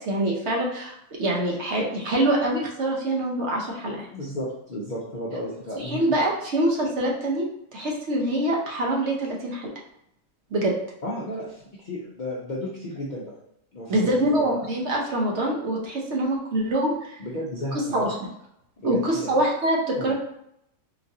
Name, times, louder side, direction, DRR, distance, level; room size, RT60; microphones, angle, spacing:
voice 1, 0.1-4.1 5.7-7.5 7.7-9.7 10.5-10.7 13.9-17.2 17.9-18.2 18.8-20.1, right 1 dB, 60° right, -2 dB, 0.9 m, -25 dB
voice 2, 4.1-6.0 11.0-13.4 13.7-14.6 17.2-18.1 18.8-19.4 20.0-20.1, left 1 dB, 55° left, -6 dB, 0.5 m, -33 dB
3.8 x 2.5 x 2.7 m, 0.77 s
omnidirectional pair, 1.5 m